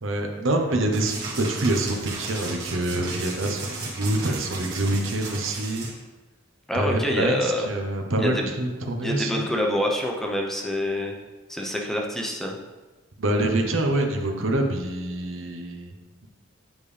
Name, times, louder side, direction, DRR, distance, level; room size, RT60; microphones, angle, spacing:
voice 1, 0.0-5.9 6.7-9.5 13.2-15.9, right 1 dB, 80° right, 3 dB, 0.9 m, -26 dB
sound 1, 0.9-5.9, right 3 dB, 55° right, 1.8 m, -35 dB
voice 2, 6.7-7.7 8.2-8.5 9.0-11.1 11.5-12.6, left 1 dB, ahead, 0 dB, 0.8 m, -26 dB
9.1 x 5.3 x 3.3 m, 1.2 s
head